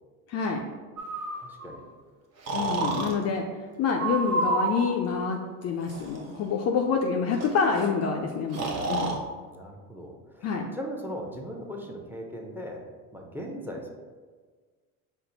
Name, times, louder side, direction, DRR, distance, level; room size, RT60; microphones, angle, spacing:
voice 1, 0.3-0.6 2.5-3.5 3.8-9.2 10.4-10.7, left 5 dB, 35° left, 1 dB, 0.4 m, -27 dB
Breathing, 1.0-1.7 2.5-3.1 4.0-4.9 5.8-6.2 7.4-7.5 7.7-7.9 8.5-9.2, right 2 dB, 35° right, 0.9 m, -29 dB
voice 2, 1.4-1.8 3.2-3.3 9.5-12.9 13.1-13.9, equal, 5° right, 1 dB, 0.7 m, -39 dB
5.3 x 2.1 x 3.9 m, 1.4 s
hypercardioid pair, 80°, 46 cm